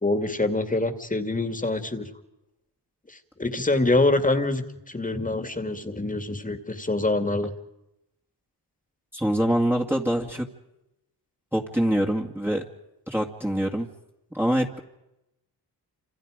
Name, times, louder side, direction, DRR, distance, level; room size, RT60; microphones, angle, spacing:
voice 1, 0.0-2.1 3.1-7.5, left 2 dB, 20° left, 8 dB, 2.4 m, -25 dB
voice 2, 9.1-10.5 11.5-12.6 13.1-13.9 14.3-14.8, equal, 5° right, 0 dB, 2.2 m, -24 dB
28.5 x 27.0 x 5.2 m, 0.91 s
cardioid pair, 90°, 41 cm